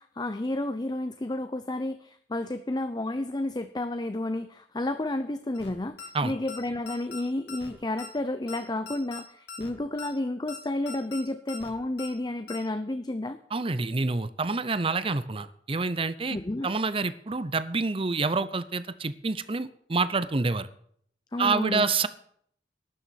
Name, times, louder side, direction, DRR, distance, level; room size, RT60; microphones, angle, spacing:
voice 1, 0.0-13.4 16.3-16.7 21.3-21.9, left 1 dB, 25° left, 10 dB, 0.6 m, -31 dB
sound 1, 5.5-5.7 6.0-6.1 6.5-6.6 6.9-7.2 7.5-7.7 8.0-8.1 8.5-8.6 8.9-9.2 9.5-9.7 10.0-10.1 10.5-10.6 10.9-11.2 11.5-11.7 12.0-12.1 12.5-12.6, left 4 dB, 90° left, 2.6 m, -41 dB
voice 2, 13.5-16.4 16.6-20.7 21.4-22.1, right 3 dB, 30° right, 14 dB, 0.7 m, -27 dB
12.5 x 7.1 x 9.4 m, 0.65 s
head